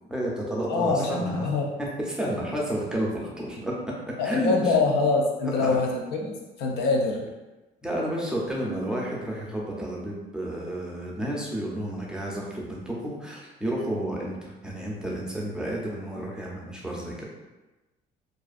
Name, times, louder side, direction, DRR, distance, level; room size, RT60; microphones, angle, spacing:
voice 1, 0.1-1.5 1.8-3.7 4.1-4.7 5.4-5.8 7.8-17.3, right 1 dB, 5° right, -4 dB, 0.5 m, -31 dB
voice 2, 0.7-1.6 4.2-7.2, left 3 dB, 80° left, 1 dB, 0.5 m, -24 dB
2.4 x 2.3 x 2.4 m, 1.1 s
cardioid pair, 110°, 17 cm